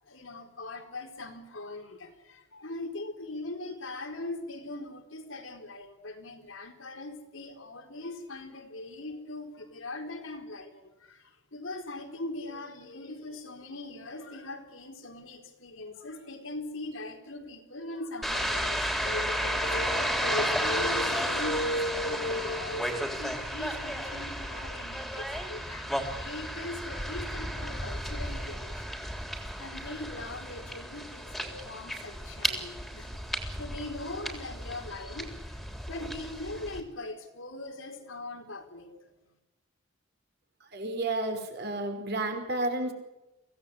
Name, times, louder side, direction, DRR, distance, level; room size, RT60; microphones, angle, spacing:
voice 1, 0.1-29.0 29.6-33.2 33.6-35.6 35.9-38.9, left 2 dB, 85° left, 3 dB, 4.3 m, -39 dB
sound 1, 18.2-36.8, equal, ahead, 3.5 m, -33 dB
voice 2, 40.7-42.9, right 2 dB, 55° right, 4 dB, 5.2 m, -31 dB
24.5 x 17.5 x 8.4 m, 1.0 s
head